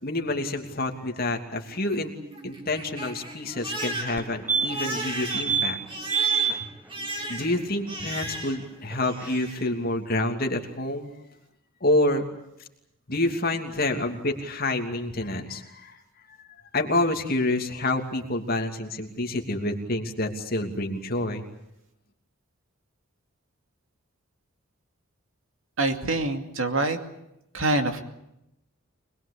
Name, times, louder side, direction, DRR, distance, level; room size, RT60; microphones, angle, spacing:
voice 1, 0.0-2.1 2.4-5.8 7.3-11.1 11.8-12.3 13.1-16.0 16.3-16.5 16.7-21.4, left 2 dB, 40° left, 3 dB, 2.9 m, -28 dB
Crying sobbing, 1.7-8.7 9.0-9.7, right 1 dB, 25° right, 3.6 m, -36 dB
sound 1, 4.2-4.3 4.5-5.0 5.3-5.7 6.1-6.5 8.9-9.0 9.2-9.3, right 6 dB, 5° right, 1.0 m, -25 dB
voice 2, 25.8-27.0 27.5-28.1, right 2 dB, 65° right, 6 dB, 2.6 m, -25 dB
26.0 x 21.0 x 8.5 m, 0.84 s
head